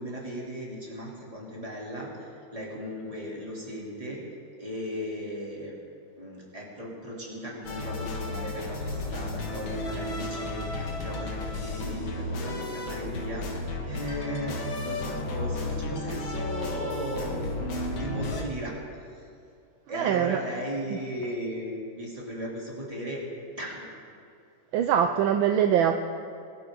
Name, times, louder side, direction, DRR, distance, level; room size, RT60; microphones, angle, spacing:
voice 1, 0.0-4.2 4.6-5.7 6.2-18.7 19.1-19.3 19.9-23.2 23.6-23.9, equal, 15° right, -4 dB, 3.3 m, -36 dB
sound 1, 7.6-18.4, left 2 dB, 65° left, 2.4 m, -33 dB
voice 2, 19.9-20.4 20.9-21.0 24.7-26.0, right 9 dB, 75° right, 7 dB, 1.3 m, -23 dB
24.0 x 12.0 x 3.9 m, 2.5 s
omnidirectional pair, 2.4 m